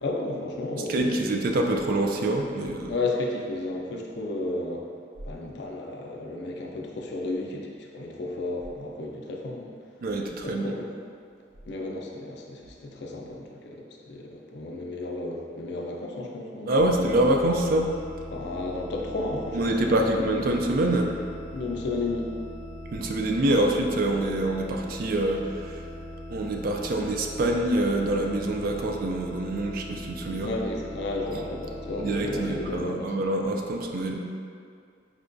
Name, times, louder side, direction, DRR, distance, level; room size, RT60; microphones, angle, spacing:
voice 1, 0.0-1.2 2.9-4.8 5.2-9.7 10.4-10.9 11.7-17.1 18.3-20.3 21.5-22.3 23.5-23.6 30.4-33.1, left 2 dB, 70° left, 0 dB, 0.4 m, -33 dB
voice 2, 0.9-2.9 10.0-10.7 16.7-17.9 19.5-21.1 22.9-25.9 26.3-30.5 32.0-34.2, right 1 dB, 55° right, 2 dB, 0.3 m, -25 dB
sound 1, 16.8-32.8, left 1 dB, 25° left, 0.9 m, -40 dB
4.8 x 2.2 x 2.5 m, 2.3 s
head